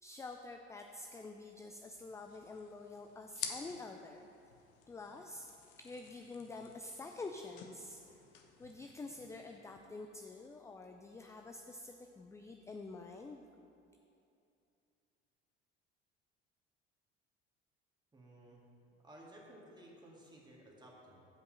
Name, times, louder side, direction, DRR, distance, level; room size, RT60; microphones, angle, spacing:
voice 1, 0.0-4.3 4.9-5.5 5.8-8.0 8.6-13.5, left 3 dB, 10° left, 4 dB, 0.3 m, -48 dB
sound 1, 1.9-9.6, left 8 dB, 65° left, 0.9 m, -51 dB
voice 2, 18.1-18.6 19.0-21.3, right 1 dB, 15° right, -3 dB, 2.0 m, -56 dB
7.6 x 5.4 x 6.4 m, 2.6 s
hypercardioid pair, 60°, 33 cm